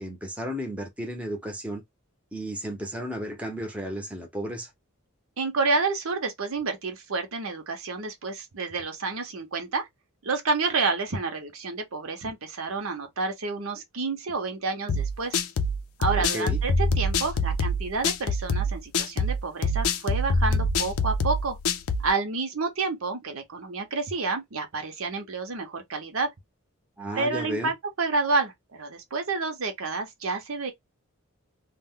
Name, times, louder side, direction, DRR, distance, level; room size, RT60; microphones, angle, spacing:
voice 1, 0.0-1.8 2.3-4.7 16.2-16.6 27.0-27.7, equal, 5° right, 0.7 m, -33 dB
voice 2, 5.4-9.9 10.2-15.4 16.0-21.6 22.0-26.3 27.1-30.7, right 4 dB, 70° right, 0.8 m, -29 dB
sound 1, 14.9-22.1, left 2 dB, 75° left, 0.5 m, -25 dB
2.4 x 2.2 x 3.6 m
head